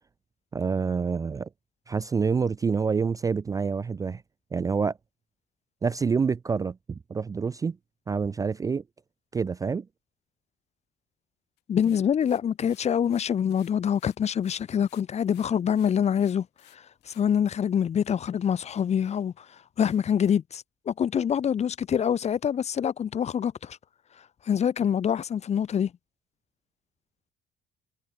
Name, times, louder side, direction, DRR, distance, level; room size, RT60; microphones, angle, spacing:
voice 1, 0.5-1.5 1.9-4.2 4.5-5.0 5.8-7.8 8.1-8.8 9.3-9.9, right 5 dB, 20° right, 0.3 m, -27 dB
sound 1, 11.6-16.8 17.0-17.5 18.1-18.2 18.7-18.8 19.2-19.3 19.8-20.4, left 20 dB, 90° left, 4.5 m, -58 dB
voice 2, 11.7-16.5 16.7-19.5 19.8-23.8 24.5-25.9, left 8 dB, 40° left, 1.0 m, -25 dB
cardioid pair, 110°, 17 cm